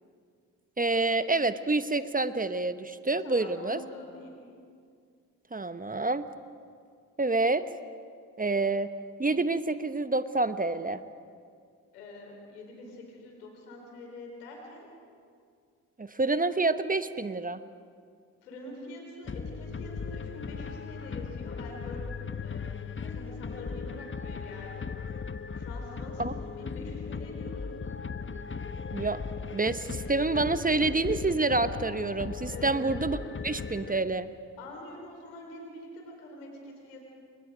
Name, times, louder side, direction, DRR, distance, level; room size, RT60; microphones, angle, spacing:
voice 1, 0.8-3.8 5.5-6.2 7.2-7.6 8.4-8.9 9.2-11.0 16.0-17.6 26.2-26.3 28.9-29.2 29.5-33.2 33.4-34.3, right 3 dB, 20° right, 12 dB, 1.1 m, -27 dB
voice 2, 3.2-4.4 11.9-14.9 18.4-24.8 25.5-27.8 32.5-32.8 34.6-37.0, left 1 dB, 90° left, 1 dB, 4.6 m, -45 dB
sound 1, 19.3-34.3, left 5 dB, 25° left, 1.2 m, -37 dB
29.0 x 25.0 x 5.2 m, 2.2 s
hypercardioid pair, 45°, 44 cm